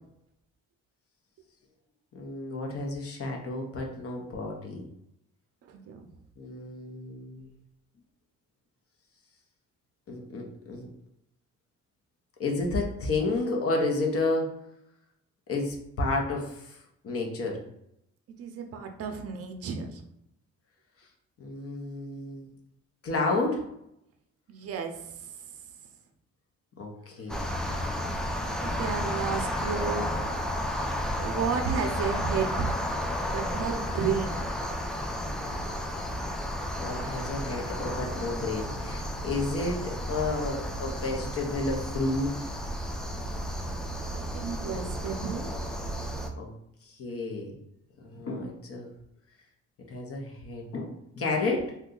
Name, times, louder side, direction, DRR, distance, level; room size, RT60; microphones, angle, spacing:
voice 1, 2.1-4.8 6.4-7.5 10.1-10.9 12.4-14.5 15.5-16.8 17.0-17.6 21.4-22.5 23.0-23.6 26.8-27.4 36.8-42.5 46.4-46.5 46.9-47.5 48.0-48.9 49.9-51.7, left 2 dB, 50° left, 1 dB, 0.8 m, -31 dB
voice 2, 5.7-6.1 18.4-20.0 24.5-25.0 28.6-30.1 31.2-32.7 33.3-34.5 44.1-45.6, right 6 dB, 50° right, 5 dB, 0.5 m, -32 dB
sound 1, 27.3-46.3, equal, ahead, 0.4 m, -32 dB
2.7 x 2.3 x 3.7 m, 0.79 s
cardioid pair, 90°, 30 cm